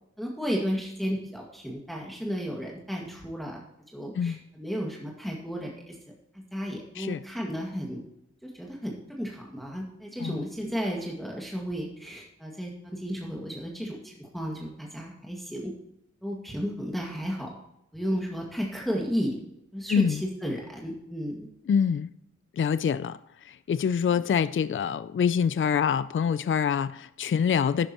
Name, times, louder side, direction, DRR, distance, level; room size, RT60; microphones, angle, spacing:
voice 1, 0.2-3.6 3.9-6.0 6.5-8.0 8.4-15.7 16.2-17.5 17.9-19.4 19.7-21.4, equal, ahead, -2 dB, 2.0 m, -33 dB
voice 2, 19.9-20.2 21.7-22.1 22.6-27.9, left 7 dB, 45° left, 15 dB, 0.4 m, -25 dB
11.5 x 9.9 x 3.0 m, 0.82 s
wide cardioid pair, 80°, 30 cm